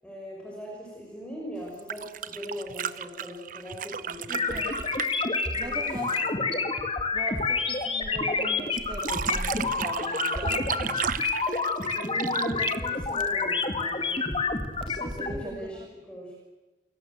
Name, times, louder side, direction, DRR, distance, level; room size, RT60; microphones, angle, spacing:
voice 1, 0.0-4.7 5.6-5.7 6.0-6.2 10.4-10.8 11.9-14.2 15.2-15.8 16.1-16.3, equal, 5° left, -2 dB, 6.1 m, -39 dB
sound 1, 1.7-6.4 8.8-13.6 15.1-15.2, right 7 dB, 50° right, 1.0 m, -34 dB
sound 2, 4.3-15.4, left 4 dB, 30° left, 2.4 m, -28 dB
voice 2, 4.3-4.9 5.6-6.6 7.1-11.0 14.8-15.8, right 1 dB, 25° right, 3 dB, 2.3 m, -40 dB
29.0 x 23.0 x 7.9 m, 1.1 s
head